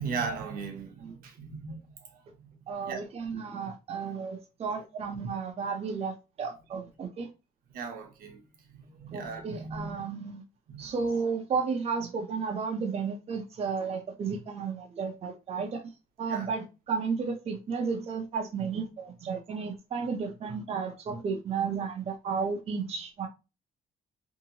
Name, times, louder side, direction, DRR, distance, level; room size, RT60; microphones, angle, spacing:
voice 1, 0.0-3.1 7.7-8.4 8.7-10.0 10.7-10.8 16.3-16.5, right 5 dB, 75° right, 0.8 m, -38 dB
voice 2, 2.7-7.3 9.1-10.4 10.8-15.8 16.2-23.3, right 5 dB, 40° right, 0.6 m, -33 dB
2.7 x 2.7 x 2.8 m
cardioid pair, 120°, 15 cm